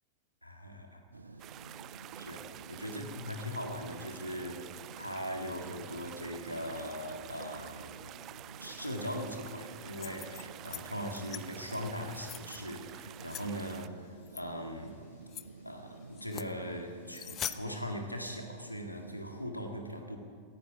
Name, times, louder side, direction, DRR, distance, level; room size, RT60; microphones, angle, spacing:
voice 1, 0.4-1.3 2.2-4.7 5.0-8.1 8.6-15.0 15.6-20.2, equal, 90° left, 3 dB, 1.9 m, -40 dB
sound 1, 1.1-19.5, right 3 dB, 75° right, 0.6 m, -51 dB
sound 2, 1.4-13.9, right 13 dB, 35° right, 0.3 m, -49 dB
sound 3, 9.8-10.8 11.1-11.4 12.0-12.6 13.3-13.4 14.3-14.4 14.9-15.0 15.3-15.4 16.1-16.5 17.1-17.6, left 11 dB, 30° left, 0.5 m, -42 dB
18.5 x 15.0 x 5.0 m, 2.1 s
figure-of-eight pair, 90°, 0 cm